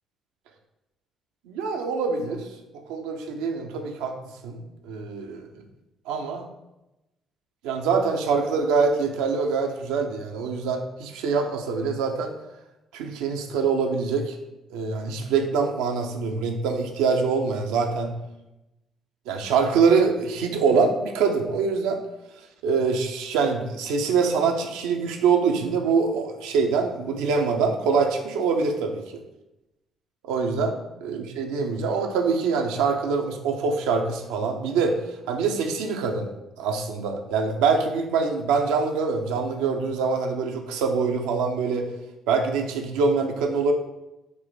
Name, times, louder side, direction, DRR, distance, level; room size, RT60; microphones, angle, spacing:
voice 1, 1.5-2.5 2.9-4.1 4.4-5.5 6.1-6.5 7.6-12.3 12.9-14.4 14.7-18.2 19.3-22.0 22.6-29.0 30.2-35.0 35.3-36.3 36.6-41.9 42.3-43.7, right 5 dB, 65° right, 4 dB, 0.5 m, -24 dB
6.0 x 2.6 x 3.4 m, 0.96 s
figure-of-eight pair, 45°, 0 cm